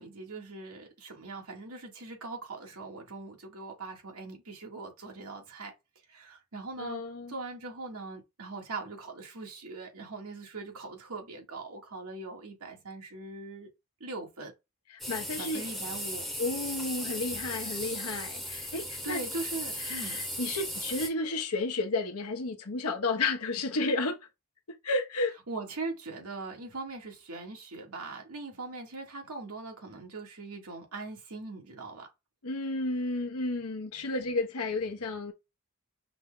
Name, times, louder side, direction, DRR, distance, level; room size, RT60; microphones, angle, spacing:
voice 1, 0.0-5.7 6.1-7.0 7.3-13.7 14.0-14.5 15.4-16.2 19.0-20.2 25.5-32.1, right 3 dB, 85° right, 1.5 m, -41 dB
voice 2, 6.8-7.3 15.1-15.6 16.4-19.2 19.8-24.2 24.8-25.3 32.4-35.3, left 3 dB, 90° left, 0.9 m, -32 dB
sound 1, 15.0-21.1, equal, ahead, 0.8 m, -37 dB
5.7 x 2.2 x 3.7 m
head